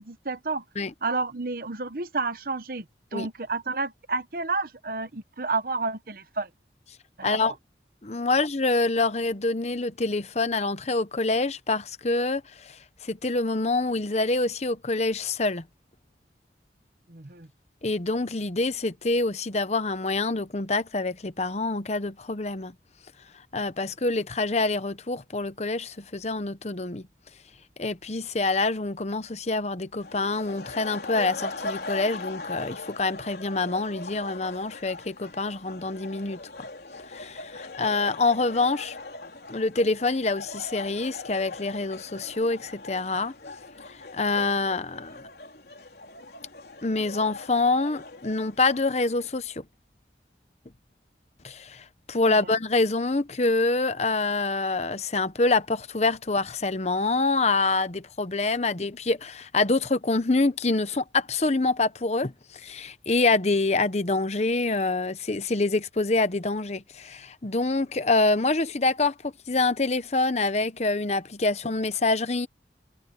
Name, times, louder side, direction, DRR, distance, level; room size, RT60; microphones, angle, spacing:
voice 1, 0.0-0.6 1.0-2.8 3.1-6.5 7.2-7.4 17.1-17.5, right 3 dB, 55° right, 1.1 m, -30 dB
voice 2, 7.2-7.5 8.0-15.6 17.8-22.7 23.5-27.1 27.8-36.4 37.1-39.0 39.5-43.3 44.1-45.3 46.8-49.6 51.4-72.5, left 3 dB, 40° left, 0.9 m, -26 dB
sound 1, 29.9-49.3, left 2 dB, 60° left, 4.0 m, -40 dB
head